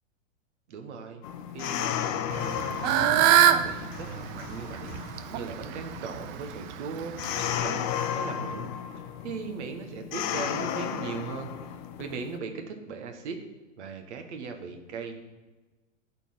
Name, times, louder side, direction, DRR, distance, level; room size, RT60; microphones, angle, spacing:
voice 1, 0.7-1.2 1.5-7.9 8.1-8.7 8.9-11.5 12.0-13.4 13.8-15.2, right 5 dB, 60° right, 5 dB, 1.5 m, -38 dB
sound 1, 1.2-12.4, left 9 dB, 40° left, 0.7 m, -34 dB
Fowl / Bird, 2.3-7.6, right 10 dB, 25° right, 0.4 m, -25 dB
12.5 x 4.5 x 5.6 m, 1.2 s
hypercardioid pair, 110°, 39 cm